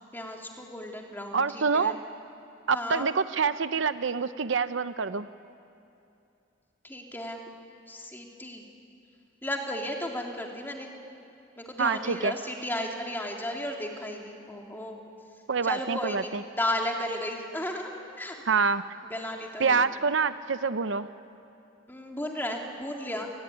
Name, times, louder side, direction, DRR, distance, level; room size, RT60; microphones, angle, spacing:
voice 1, 0.1-2.0 2.7-3.1 6.8-7.4 7.9-8.6 9.4-10.9 11.6-15.0 15.6-18.4 19.1-19.8 21.9-23.3, left 1 dB, 10° left, 1 dB, 2.8 m, -34 dB
voice 2, 1.3-2.0 2.7-5.3 11.8-12.3 15.5-16.4 18.5-18.8 19.6-21.1, right 5 dB, 65° right, 12 dB, 0.7 m, -26 dB
28.5 x 20.0 x 9.7 m, 2.7 s
head